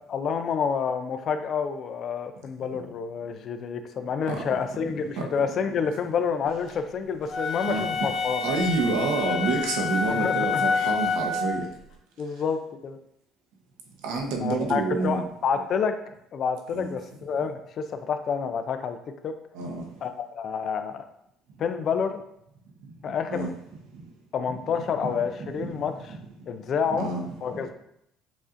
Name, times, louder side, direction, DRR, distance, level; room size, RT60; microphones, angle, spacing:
voice 1, 0.1-8.6 10.1-10.7 12.2-13.0 14.4-16.0 16.3-19.0 19.2-19.3 20.0-21.0 21.6-22.2 23.0-23.5 24.3-26.2 26.5-27.1 27.4-27.7, left 6 dB, 45° left, 8 dB, 0.4 m, -28 dB
sound 1, 7.3-11.6, left 5 dB, 60° left, 0.8 m, -27 dB
voice 2, 8.4-11.7 14.0-15.2 16.7-16.9 19.5-19.8 23.0-23.5 24.7-25.1 25.4-25.7 26.1-26.2 26.9-27.2 27.5-27.6, right 3 dB, 90° right, 1 dB, 0.8 m, -28 dB
7.0 x 2.6 x 2.5 m, 0.77 s
cardioid pair, 145°, 0 cm